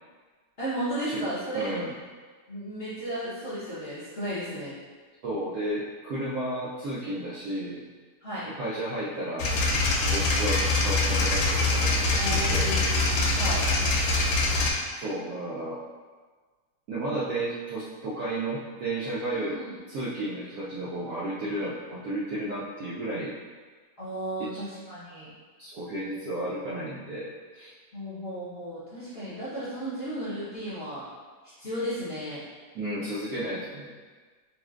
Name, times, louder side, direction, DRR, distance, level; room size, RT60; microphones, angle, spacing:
voice 1, 0.6-1.7 2.5-4.7 8.2-8.5 12.2-13.7 19.3-19.7 24.0-25.3 27.9-31.1 31.6-32.4, right 1 dB, 40° left, -12 dB, 1.0 m, -34 dB
voice 2, 1.5-1.9 5.2-7.8 8.6-9.5 10.0-12.7 15.0-15.8 16.9-19.6 19.9-23.3 24.4-24.6 25.6-27.7 32.7-33.9, right 1 dB, 70° right, -7 dB, 0.9 m, -33 dB
sound 1, 9.4-14.7, left 2 dB, 90° left, 1.5 m, -24 dB
5.5 x 2.5 x 2.4 m, 1.4 s
omnidirectional pair, 2.1 m